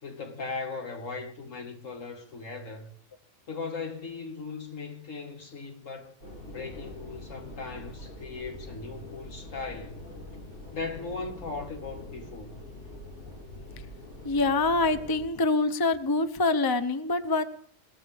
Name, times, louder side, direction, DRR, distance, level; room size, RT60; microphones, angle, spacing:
voice 1, 0.0-2.9 3.5-6.2 6.5-10.0 10.7-12.6, left 4 dB, 75° left, 2.3 m, -38 dB
sound 1, 6.2-15.2, left 1 dB, 90° left, 7.1 m, -44 dB
voice 2, 14.2-17.4, left 3 dB, 20° left, 0.6 m, -25 dB
21.5 x 19.0 x 3.5 m
omnidirectional pair, 1.4 m